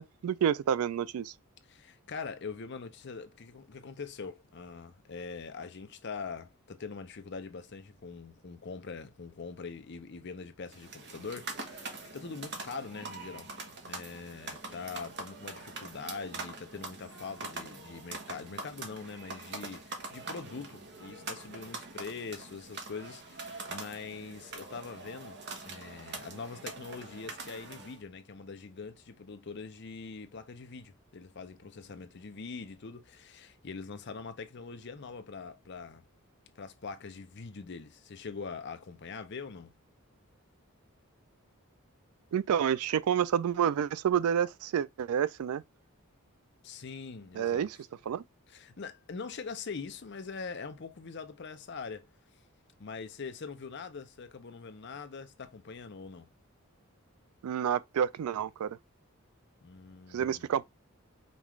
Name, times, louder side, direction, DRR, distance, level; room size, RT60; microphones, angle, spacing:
voice 1, 0.0-1.3 42.3-45.6 47.3-47.8 48.1-48.2 57.4-58.8 60.1-60.6, right 8 dB, 80° right, 0.3 m, -29 dB
voice 2, 1.7-13.5 13.8-25.4 25.7-36.0 36.6-39.7 46.6-47.7 48.5-52.1 52.8-56.3 59.6-60.5, left 4 dB, 50° left, 0.6 m, -43 dB
sound 1, 10.7-28.0, right 3 dB, 50° right, 1.0 m, -43 dB
5.2 x 2.4 x 3.1 m
head